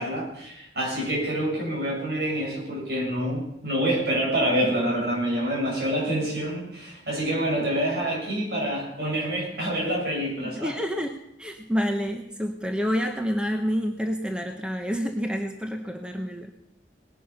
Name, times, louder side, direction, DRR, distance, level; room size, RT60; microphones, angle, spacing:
voice 1, 0.0-10.8, right 1 dB, 65° right, -2 dB, 6.9 m, -27 dB
voice 2, 10.5-16.5, equal, 5° right, 4 dB, 0.9 m, -28 dB
19.5 x 11.0 x 5.7 m, 0.81 s
head